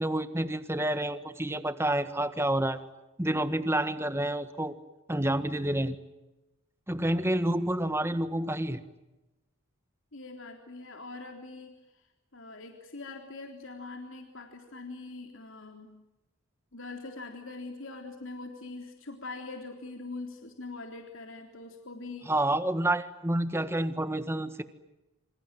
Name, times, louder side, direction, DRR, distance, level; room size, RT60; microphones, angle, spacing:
voice 1, 0.0-2.8 3.2-4.7 5.1-6.0 6.9-8.8 22.3-24.6, right 1 dB, 10° right, 11 dB, 1.5 m, -29 dB
voice 2, 10.1-11.7 12.3-15.9 16.7-22.3, left 3 dB, 65° left, 4 dB, 3.6 m, -43 dB
28.5 x 27.0 x 7.6 m, 1.0 s
head